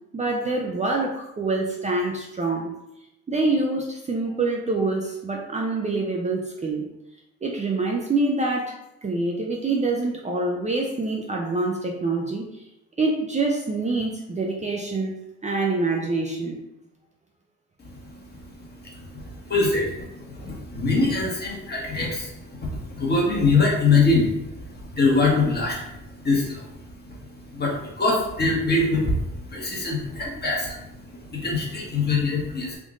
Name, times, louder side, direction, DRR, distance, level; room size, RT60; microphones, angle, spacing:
voice 1, 0.1-2.7 3.3-6.8 7.4-12.5 13.0-15.1 15.4-16.6, right 3 dB, 25° right, -1 dB, 0.5 m, -25 dB
voice 2, 17.8-32.7, left 3 dB, 35° left, -2 dB, 1.3 m, -24 dB
3.7 x 2.5 x 3.6 m, 0.86 s
cardioid pair, 90°, 30 cm